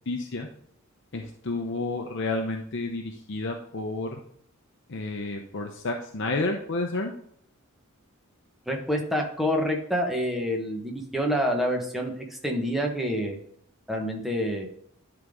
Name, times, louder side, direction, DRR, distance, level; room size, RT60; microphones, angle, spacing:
voice 1, 0.1-0.5 1.1-4.2 4.9-7.1, left 2 dB, 55° left, 3 dB, 0.7 m, -30 dB
voice 2, 8.7-13.4 13.9-14.7, equal, ahead, 1 dB, 1.1 m, -27 dB
11.0 x 4.0 x 3.6 m, 0.66 s
head